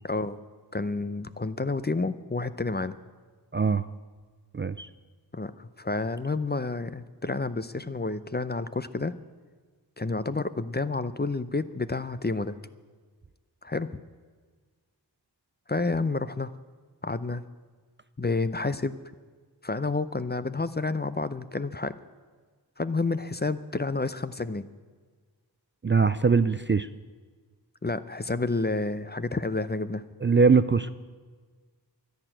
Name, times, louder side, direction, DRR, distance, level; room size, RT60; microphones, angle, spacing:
voice 1, 0.0-0.4 0.7-2.9 5.3-9.1 10.0-12.6 13.6-14.0 15.7-16.5 17.0-17.4 18.2-19.0 19.6-21.9 22.8-24.7 27.8-30.0, left 3 dB, 25° left, 14 dB, 0.6 m, -30 dB
voice 2, 3.5-3.9 4.5-4.9 25.8-26.9 30.2-30.9, right 5 dB, 30° right, 13 dB, 0.4 m, -22 dB
12.0 x 10.5 x 9.0 m, 1.5 s
wide cardioid pair, 65°, 42 cm